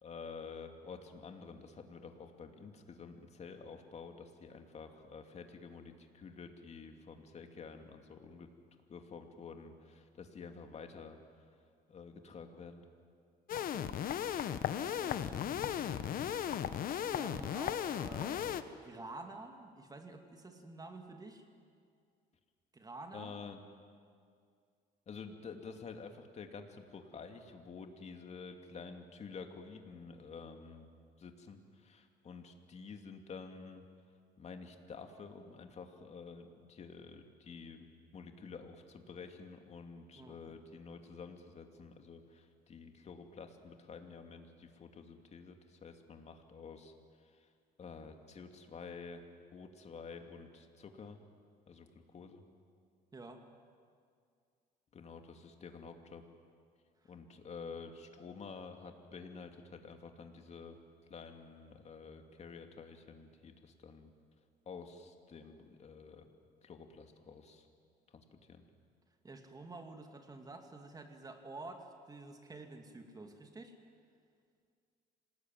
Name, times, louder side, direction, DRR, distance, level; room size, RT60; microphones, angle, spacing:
voice 1, 0.0-8.5 8.9-11.2 11.9-12.8 23.1-23.6 25.1-30.9 31.2-33.8 34.4-37.9 38.1-47.5 47.8-49.2 49.5-51.2 51.7-52.4 54.9-56.2 57.1-60.8 61.1-64.1 64.7-66.3 66.6-67.7 68.1-68.6, left 5 dB, 40° left, 5 dB, 2.7 m, -50 dB
sound 1, 13.5-18.6, left 9 dB, 60° left, 1.2 m, -36 dB
voice 2, 13.5-14.0 14.9-15.7 17.1-21.4 22.7-23.3 40.2-40.6 53.1-53.5 57.0-57.1 69.2-73.8, right 2 dB, 20° right, 5 dB, 2.5 m, -50 dB
26.5 x 19.5 x 9.4 m, 2.2 s
cardioid pair, 110°, 17 cm